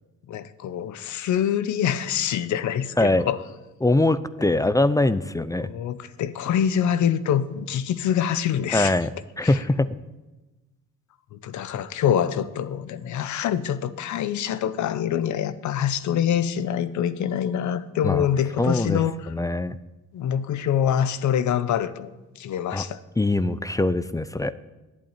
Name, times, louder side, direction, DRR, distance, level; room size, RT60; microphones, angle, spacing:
voice 1, 0.3-3.4 4.6-4.7 5.6-9.0 9.4-9.6 11.3-19.2 20.1-23.0, left 9 dB, 75° left, 0.9 m, -25 dB
voice 2, 3.0-3.3 3.8-5.7 8.7-9.1 9.4-9.9 18.0-18.3 18.6-19.0 19.3-19.8 22.7-22.8 23.2-24.5, left 2 dB, 10° left, 0.5 m, -22 dB
11.5 x 8.6 x 8.9 m
cardioid pair, 90°, 30 cm